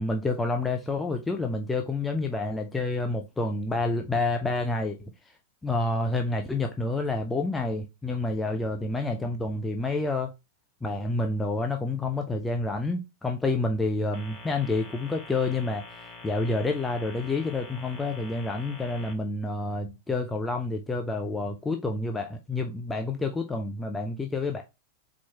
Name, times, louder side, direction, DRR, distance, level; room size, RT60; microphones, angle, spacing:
voice 1, 0.0-5.1 5.6-10.3 10.8-24.6, left 2 dB, 10° left, 0.8 m, -29 dB
sound 1, 14.1-19.1, left 3 dB, 45° left, 2.4 m, -45 dB
4.6 x 4.3 x 4.6 m
figure-of-eight pair, 90°, 0 cm